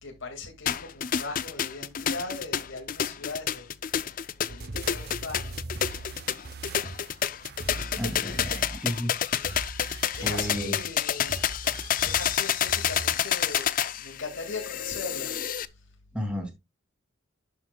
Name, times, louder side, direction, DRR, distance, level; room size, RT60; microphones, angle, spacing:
voice 1, 0.0-5.6 10.2-11.4 12.0-15.3 15.7-15.9, left 3 dB, 80° left, 2.2 m, -39 dB
sound 1, 0.7-15.7, left 9 dB, 45° left, 0.5 m, -29 dB
sound 2, 4.5-13.7, right 2 dB, 50° right, 0.7 m, -40 dB
voice 2, 7.9-9.1 10.2-10.8 16.1-16.5, equal, 5° right, 2.5 m, -32 dB
11.0 x 7.7 x 2.3 m
head